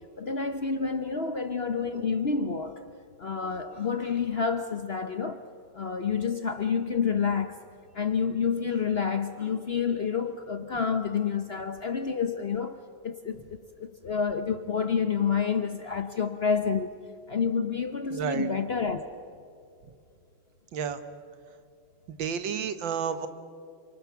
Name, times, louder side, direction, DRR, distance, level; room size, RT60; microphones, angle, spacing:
voice 1, 0.0-2.8 3.2-5.4 5.7-7.5 7.9-12.8 13.0-16.9 17.3-19.0, left 6 dB, 45° left, 8 dB, 0.8 m, -29 dB
voice 2, 18.1-18.5 20.7-21.0 22.2-23.3, right 7 dB, 85° right, 11 dB, 1.9 m, -30 dB
28.5 x 25.5 x 7.1 m, 2.5 s
omnidirectional pair, 2.0 m